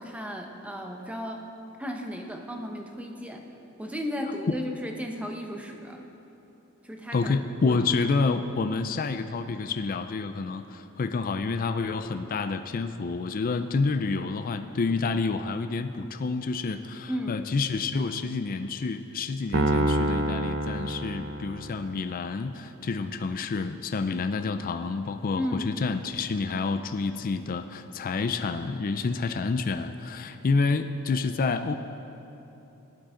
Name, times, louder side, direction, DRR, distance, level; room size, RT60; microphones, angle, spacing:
voice 1, 0.0-1.5 1.8-3.4 3.8-6.0 6.8-7.3 7.6-7.8 17.1-17.4 25.4-25.7, equal, 5° right, 2 dB, 1.0 m, -34 dB
voice 2, 7.1-31.7, left 4 dB, 40° left, 8 dB, 0.4 m, -28 dB
Piano, 19.5-22.0, right 1 dB, 55° right, 0.8 m, -27 dB
18.0 x 11.5 x 3.8 m, 3.0 s
head